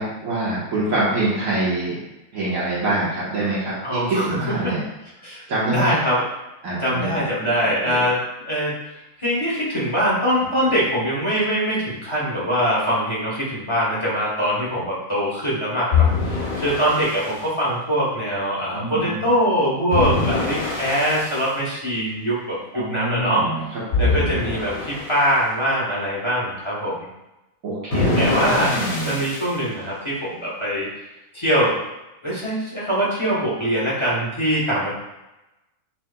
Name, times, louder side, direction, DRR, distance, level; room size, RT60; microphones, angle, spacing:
voice 1, 0.0-2.0 2.3-4.8 5.5-6.0 6.6-7.2 7.8-8.0 18.7-19.2 22.7-23.6 24.0-24.3 27.6-29.1, right 2 dB, 70° right, -8 dB, 1.6 m, -25 dB
voice 2, 3.8-4.7 5.2-6.2 6.8-8.2 8.4-27.1 28.2-28.8 29.0-30.9 31.3-31.8 32.2-34.9, equal, 25° left, -7 dB, 1.0 m, -23 dB
sound 1, 15.9-17.3 19.9-21.4 23.9-25.3 27.9-29.5, left 4 dB, 70° left, 1.4 m, -23 dB
5.7 x 3.3 x 2.2 m, 0.96 s
omnidirectional pair, 1.5 m